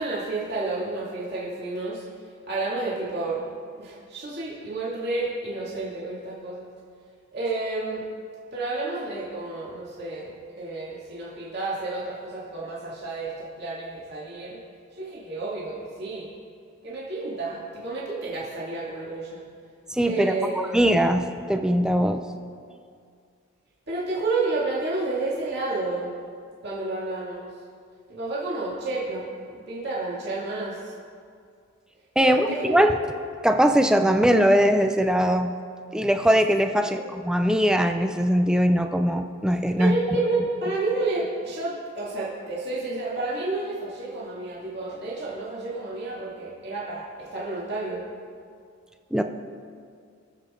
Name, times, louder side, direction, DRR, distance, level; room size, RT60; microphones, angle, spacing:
voice 1, 0.0-2.0 2.5-3.4 3.8-6.7 7.3-8.0 8.5-14.6 14.9-16.3 16.8-19.4 20.1-20.7 23.9-26.1 26.6-27.5 28.1-29.3 29.7-30.9 32.2-32.8 36.9-37.0 39.8-48.0, right 3 dB, 50° right, -6 dB, 2.5 m, -30 dB
voice 2, 19.9-22.2 32.2-32.9 33.4-35.5 35.9-39.9 49.1-49.2, equal, 5° right, 6 dB, 0.5 m, -21 dB
22.5 x 7.7 x 3.8 m, 2.2 s
head